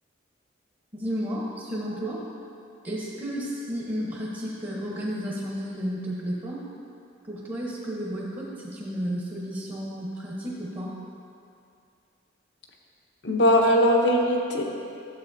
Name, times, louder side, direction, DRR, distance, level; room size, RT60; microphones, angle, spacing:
voice 1, 0.9-2.2 2.8-6.6 7.3-11.0, equal, 25° right, -6 dB, 1.1 m, -32 dB
voice 2, 13.2-14.6, equal, 70° left, 0 dB, 1.0 m, -20 dB
12.5 x 7.9 x 2.7 m, 2.5 s
head